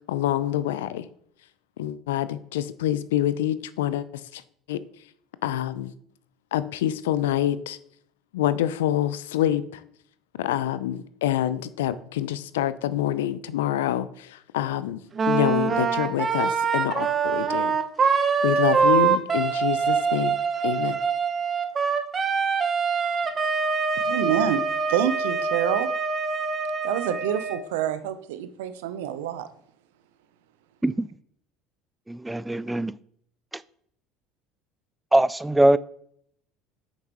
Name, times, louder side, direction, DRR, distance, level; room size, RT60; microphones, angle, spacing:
voice 1, 0.1-1.1 1.8-4.1 4.3-4.4 4.7-4.8 5.4-5.9 6.5-7.8 8.3-9.8 10.4-17.8 18.0-20.4 20.6-21.0, left 12 dB, 80° left, 0.5 m, -26 dB
Wind instrument woodwind instrument, 15.1-27.6, right 5 dB, 35° right, 0.9 m, -24 dB
voice 2, 24.1-24.6 24.9-25.9 26.8-29.5, right 10 dB, 75° right, 0.6 m, -27 dB
voice 3, 32.1-32.9 35.1-35.8, right 1 dB, 10° right, 0.4 m, -21 dB
8.3 x 6.7 x 3.0 m
hypercardioid pair, 70°, 0 cm